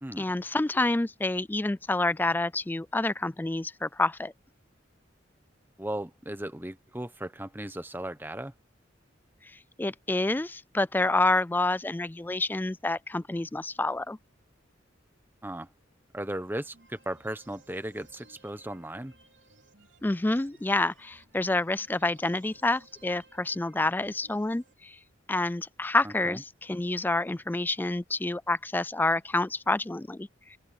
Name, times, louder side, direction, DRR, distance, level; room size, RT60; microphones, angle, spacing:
voice 1, 0.2-4.3 9.4-14.2 20.0-25.0 25.3-30.6, left 2 dB, 10° left, 0.3 m, -28 dB
voice 2, 5.8-8.5 15.4-15.7 16.1-19.1 26.0-26.4, right 1 dB, 10° right, 1.1 m, -36 dB
sound 1, 16.7-24.7, right 3 dB, 65° right, 3.3 m, -59 dB
open air
head